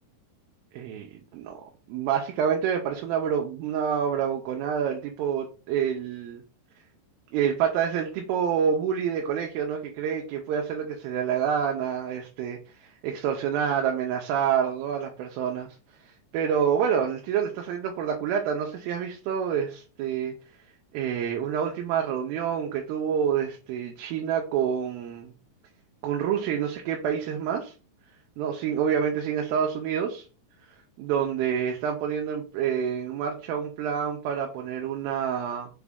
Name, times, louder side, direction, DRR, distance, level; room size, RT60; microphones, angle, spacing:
voice 1, 0.7-1.1 1.3-1.5 1.9-6.4 7.3-15.7 16.3-20.3 20.9-25.3 26.0-27.7 28.4-30.3 31.0-35.7, right 8 dB, 85° right, 2 dB, 2.4 m, -27 dB
5.9 x 2.2 x 3.4 m, 0.36 s
omnidirectional pair, 4.2 m